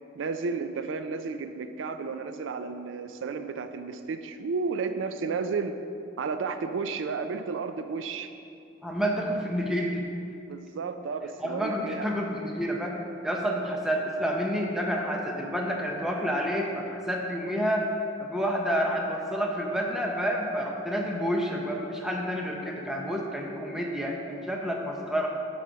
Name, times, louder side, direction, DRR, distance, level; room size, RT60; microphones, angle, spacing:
voice 1, 0.2-5.8 6.2-8.3 10.5-12.1, right 4 dB, 80° right, 9 dB, 0.4 m, -32 dB
voice 2, 8.8-10.0 11.4-13.0 13.2-17.9 18.2-25.3, equal, ahead, -1 dB, 0.8 m, -29 dB
12.0 x 5.0 x 4.0 m, 2.6 s
head